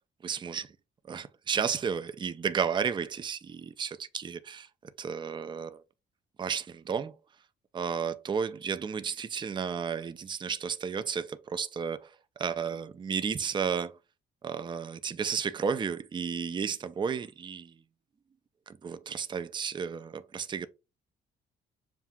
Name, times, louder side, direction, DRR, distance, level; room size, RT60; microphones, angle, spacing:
voice 1, 0.2-0.8 1.1-5.8 6.4-7.1 7.7-14.0 14.4-17.8 18.7-20.7, right 6 dB, 25° right, 0.4 m, -33 dB
7.2 x 2.4 x 2.2 m
cardioid pair, 90°, 20 cm